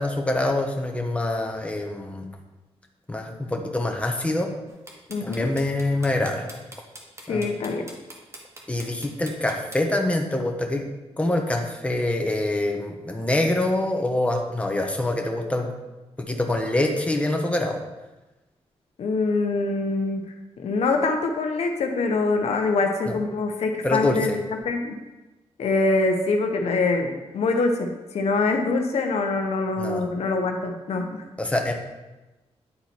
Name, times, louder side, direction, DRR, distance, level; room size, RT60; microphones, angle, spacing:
voice 1, 0.0-2.3 3.1-4.5 5.2-6.5 7.3-7.5 8.7-10.9 11.2-15.7 16.2-17.8 23.1-23.2 23.8-24.4 29.8-30.0 31.4-31.7, left 1 dB, 10° left, 2 dB, 1.0 m, -25 dB
sound 1, 4.7-9.8, right 1 dB, 25° right, 1.4 m, -42 dB
voice 2, 5.1-5.5 7.3-7.9 19.0-20.2 20.6-24.3 24.6-24.9 25.6-31.2, left 3 dB, 75° left, 4 dB, 0.8 m, -24 dB
9.8 x 4.1 x 4.4 m, 1.1 s
cardioid pair, 90°, 11 cm